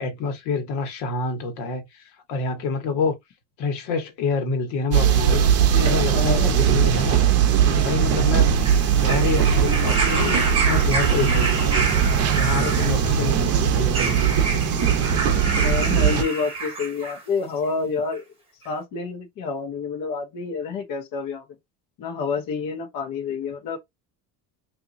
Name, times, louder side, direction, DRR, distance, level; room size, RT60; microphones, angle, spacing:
voice 1, 0.0-3.2 3.6-5.4 5.8-7.2 7.7-8.5 8.9-11.8 12.3-14.3, left 4 dB, 75° left, 1.4 m, -27 dB
sound 1, 4.9-16.2, right 8 dB, 35° right, 0.7 m, -20 dB
voice 2, 5.6-6.5 8.0-8.4 12.6-13.0 15.6-18.2 18.6-21.4 22.0-23.8, left 4 dB, 50° left, 1.2 m, -29 dB
sound 2, 8.6-17.2 18.1-18.2, right 3 dB, 15° right, 1.5 m, -29 dB
3.7 x 2.8 x 2.6 m
cardioid pair, 170°, 42 cm